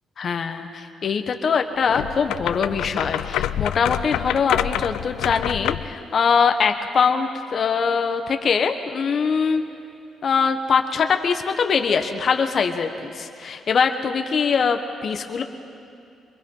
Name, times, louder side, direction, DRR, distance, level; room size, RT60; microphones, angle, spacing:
voice 1, 0.2-9.6 10.2-15.4, left 5 dB, 50° left, 6 dB, 1.2 m, -22 dB
sound 1, 1.9-6.0, left 12 dB, 90° left, 0.4 m, -27 dB
23.5 x 22.0 x 5.6 m, 2.6 s
cardioid pair, 90°, 0 cm